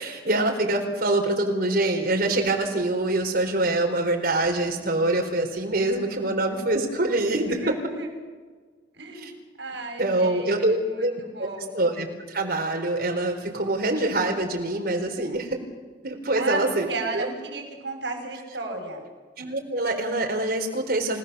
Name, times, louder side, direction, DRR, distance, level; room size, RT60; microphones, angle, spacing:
voice 1, 0.0-7.8 9.2-9.3 10.0-11.5 11.7-15.6 16.0-16.9 17.1-17.3 19.4-21.2, right 2 dB, 55° right, 2 dB, 4.3 m, -25 dB
voice 2, 7.5-8.1 8.9-9.3 9.6-10.5 10.8-11.8 16.3-19.0, right 3 dB, 75° right, 1 dB, 6.8 m, -34 dB
29.5 x 18.5 x 6.9 m, 1.5 s
head